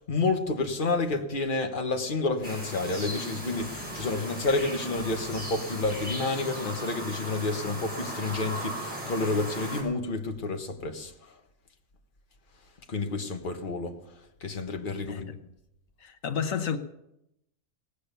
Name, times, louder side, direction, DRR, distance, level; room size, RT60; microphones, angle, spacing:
voice 1, 0.0-11.3 12.9-13.9 14.4-15.3, left 3 dB, 40° left, 1.5 m, -30 dB
sound 1, 2.4-9.8, equal, 5° right, 6.0 m, -37 dB
Drum kit, 3.6-6.0, left 2 dB, 45° right, 7.4 m, -49 dB
voice 2, 16.0-16.8, left 7 dB, 80° left, 1.3 m, -30 dB
18.5 x 8.3 x 6.8 m
omnidirectional pair, 1.4 m